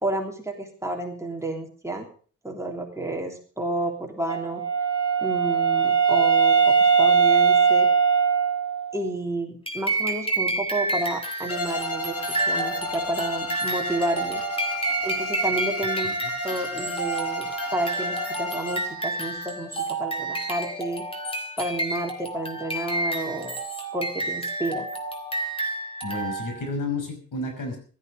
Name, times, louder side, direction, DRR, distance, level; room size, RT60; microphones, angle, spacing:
voice 1, 0.0-2.1 2.4-4.6 5.2-7.9 8.9-14.4 15.0-16.1 16.4-21.0 21.6-23.6 23.9-24.9, right 1 dB, 10° right, 1 dB, 3.2 m, -31 dB
Wind instrument woodwind instrument, 4.3-9.1, right 6 dB, 60° right, 2.9 m, -20 dB
sound 1, 9.7-26.7, right 2 dB, 15° left, 3.1 m, -30 dB
Bowed string instrument, 11.5-19.0, left 2 dB, 50° left, 2.4 m, -33 dB
voice 2, 26.0-27.8, left 3 dB, 80° left, 5 dB, 5.6 m, -31 dB
16.0 x 13.0 x 5.2 m, 0.42 s
wide cardioid pair, 140°, 32 cm